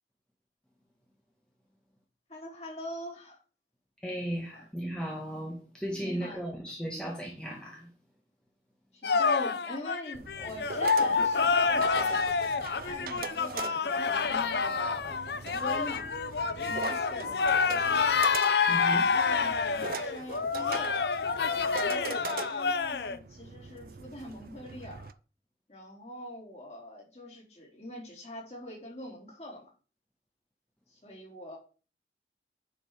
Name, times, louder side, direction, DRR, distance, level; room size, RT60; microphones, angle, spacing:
voice 1, 2.3-3.4 4.5-4.6 5.9-6.6 8.9-12.3 12.8-16.1 16.6-18.1 18.6-21.1 21.7-25.1 25.7-29.7 30.9-31.6, left 1 dB, 35° left, 3.8 m, -43 dB
voice 2, 4.0-7.9 18.6-19.1, equal, 5° left, 1.5 m, -36 dB
sound 1, 9.0-23.2, left 5 dB, 65° left, 0.6 m, -28 dB
sound 2, 10.1-25.1, right 5 dB, 55° right, 0.5 m, -41 dB
9.8 x 5.1 x 5.0 m
head